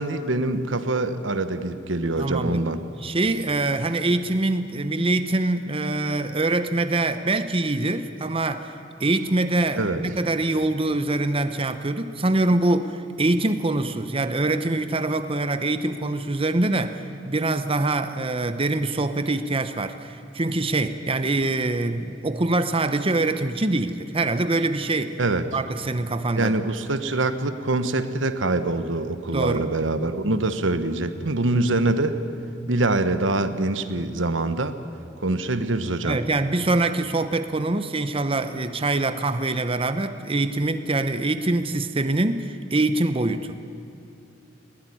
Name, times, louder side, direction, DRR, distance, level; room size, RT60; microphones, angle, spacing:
voice 1, 0.0-2.8 9.7-10.0 25.2-25.4 26.4-32.2 32.7-34.7 35.2-36.2, right 2 dB, 90° right, 10 dB, 1.3 m, -24 dB
voice 2, 2.2-2.6 3.0-8.7 9.0-25.2 25.5-26.5 29.3-29.7 36.0-43.6, right 2 dB, 30° right, 10 dB, 0.9 m, -24 dB
20.5 x 17.5 x 10.0 m, 2.6 s
head